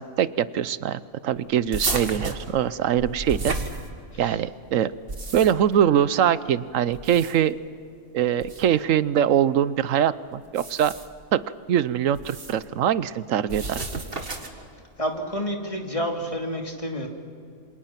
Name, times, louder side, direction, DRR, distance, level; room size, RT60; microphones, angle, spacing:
voice 1, 0.0-3.5 4.2-4.9 5.3-7.6 8.1-10.9 11.3-11.4 11.7-13.8, right 10 dB, 80° right, 16 dB, 1.1 m, -23 dB
sound 1, 1.7-4.3 4.9-5.8 6.9-7.6 8.4-8.7 10.4-11.2 12.1-12.6 13.5-14.7, right 3 dB, 45° right, 2.1 m, -32 dB
voice 2, 15.0-17.1, equal, 25° left, 1 dB, 2.9 m, -29 dB
28.0 x 26.0 x 5.9 m, 2.5 s
omnidirectional pair, 1.3 m